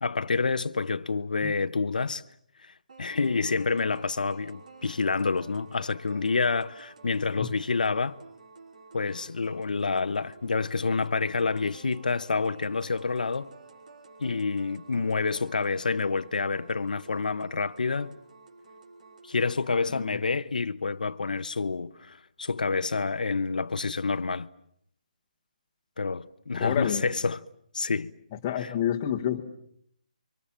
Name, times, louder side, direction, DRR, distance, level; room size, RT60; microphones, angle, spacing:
voice 1, 0.0-2.2 2.6-8.2 8.9-13.5 14.2-18.1 19.3-24.5 26.0-27.4 27.7-28.1 28.6-28.7, left 4 dB, 85° left, 1.0 m, -28 dB
sound 1, 2.9-19.9, right 3 dB, 60° right, 5.4 m, -51 dB
voice 2, 26.6-27.1 28.3-29.4, left 10 dB, 15° left, 1.4 m, -29 dB
29.0 x 25.0 x 7.4 m
hypercardioid pair, 180°, 4 cm